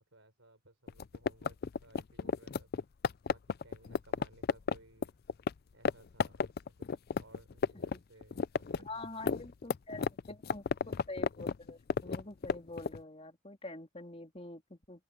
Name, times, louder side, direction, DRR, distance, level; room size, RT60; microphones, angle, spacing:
voice 1, 0.1-2.9 3.3-5.2 5.7-9.4, right 2 dB, 60° right, 4.4 m, -61 dB
sound 1, 0.9-5.5 5.8-5.9 6.2-8.0 8.2-13.0, left 5 dB, 45° left, 0.4 m, -32 dB
voice 2, 8.8-15.0, left 2 dB, 25° left, 3.5 m, -46 dB
open air
head